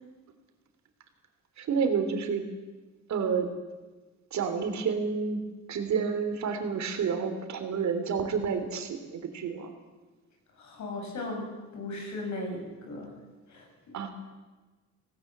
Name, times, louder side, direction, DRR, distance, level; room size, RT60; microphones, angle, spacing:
voice 1, 1.6-2.5 3.1-3.5 4.3-5.4 5.7-9.7 13.9-14.1, right 6 dB, 65° right, 8 dB, 3.2 m, -29 dB
voice 2, 10.6-13.2 13.5-13.9, left 2 dB, 70° left, 2 dB, 6.9 m, -37 dB
18.0 x 17.5 x 8.6 m, 1.3 s
cardioid pair, 90°, 30 cm